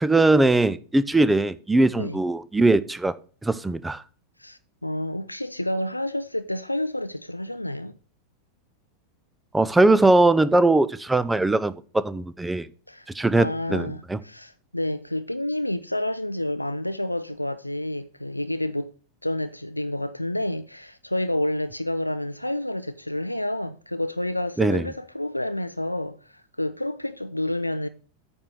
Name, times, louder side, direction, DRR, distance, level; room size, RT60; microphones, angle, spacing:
voice 1, 0.0-3.1 3.4-4.0 9.5-12.7 13.1-14.2 24.6-24.8, right 2 dB, 5° right, 0.5 m, -20 dB
voice 2, 4.4-7.9 12.9-18.9 19.2-27.9, left 1 dB, 85° left, 0.4 m, -29 dB
8.7 x 4.4 x 6.5 m
figure-of-eight pair, 90°, 0 cm